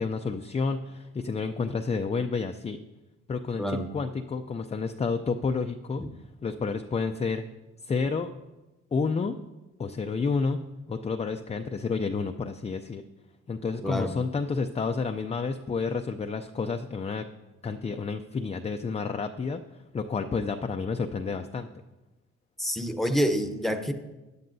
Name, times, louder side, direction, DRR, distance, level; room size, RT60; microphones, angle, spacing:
voice 1, 0.0-2.8 3.3-6.0 6.4-7.4 7.8-8.3 8.9-9.3 9.8-10.6 10.9-13.0 13.5-17.3 17.6-19.6 19.9-21.7, left 4 dB, 20° left, 6 dB, 0.4 m, -30 dB
voice 2, 3.6-3.9 13.8-14.2 22.6-23.9, equal, ahead, 7 dB, 0.9 m, -27 dB
13.5 x 10.0 x 2.7 m, 1.1 s
cardioid pair, 90°, 30 cm